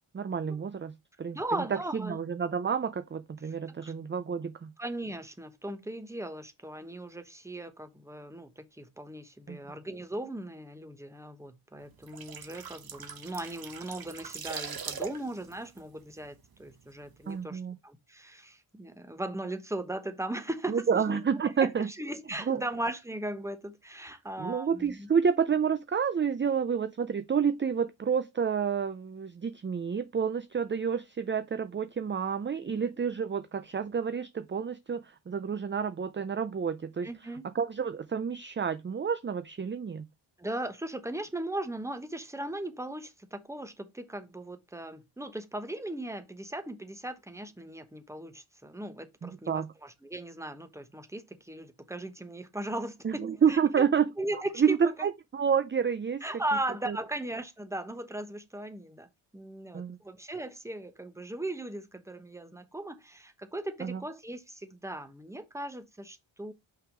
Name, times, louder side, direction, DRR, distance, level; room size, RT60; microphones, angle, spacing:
voice 1, 0.1-0.9 1.2-1.6 1.9-4.7 9.5-9.6 17.3-17.8 20.7-21.9 22.5-22.6 24.4-37.1 37.5-40.0 49.2-49.7 53.0-54.1 54.6-56.2 56.9-57.0 59.7-60.0 63.8-64.0, right 7 dB, 25° right, 0.4 m, -29 dB
voice 2, 1.3-2.2 3.4-3.5 3.8-3.9 4.8-25.1 32.6-32.7 37.0-37.5 40.4-53.0 53.3-53.9 54.2-55.1 56.2-66.5, right 1 dB, 5° right, 0.9 m, -38 dB
sound 1, 11.9-16.7 17.0-17.2, right 7 dB, 45° right, 0.9 m, -41 dB
5.6 x 3.7 x 4.9 m
wide cardioid pair, 90°, 50 cm